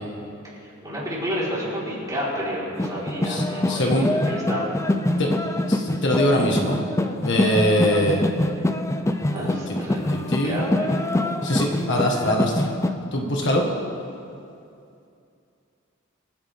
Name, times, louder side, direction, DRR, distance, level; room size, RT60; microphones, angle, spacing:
voice 1, 0.8-4.7 9.3-11.1, equal, 20° right, -8 dB, 4.4 m, -30 dB
sound 1, 2.8-12.9, left 1 dB, 15° left, 0.5 m, -25 dB
voice 2, 3.2-4.1 5.2-5.3 5.7-6.8 7.2-8.2 9.3-9.8 10.1-10.6 11.4-12.7 13.1-13.6, equal, 60° left, 0 dB, 1.6 m, -23 dB
26.0 x 10.5 x 3.6 m, 2.6 s
head